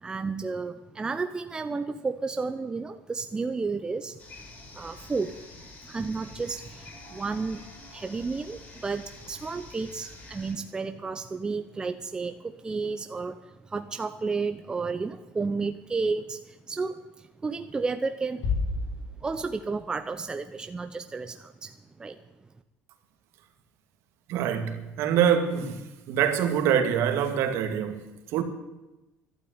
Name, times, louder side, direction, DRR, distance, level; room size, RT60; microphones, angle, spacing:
voice 1, 0.0-4.2 4.7-5.3 5.8-7.7 7.9-18.5 19.2-22.2, right 4 dB, 15° right, 0.7 m, -32 dB
sound 1, 4.2-10.5, left 2 dB, 35° left, 5.9 m, -47 dB
sound 2, 18.4-19.9, left 3 dB, 90° left, 2.2 m, -31 dB
voice 2, 24.3-25.8 26.1-28.4, right 8 dB, 65° right, 2.2 m, -25 dB
12.0 x 12.0 x 9.4 m
cardioid pair, 135°, 5 cm